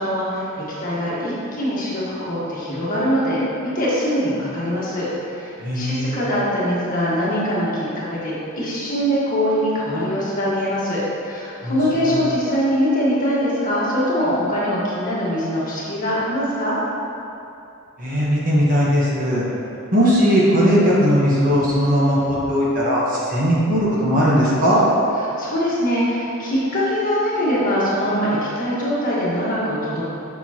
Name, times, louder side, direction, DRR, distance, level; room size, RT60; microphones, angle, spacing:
voice 1, 0.0-16.8 25.4-30.0, equal, 40° left, -8 dB, 1.5 m, -22 dB
voice 2, 5.6-6.2 11.6-12.2 18.0-19.4 19.9-24.8, equal, 40° right, -7 dB, 1.3 m, -18 dB
7.1 x 6.3 x 3.0 m, 2.7 s
head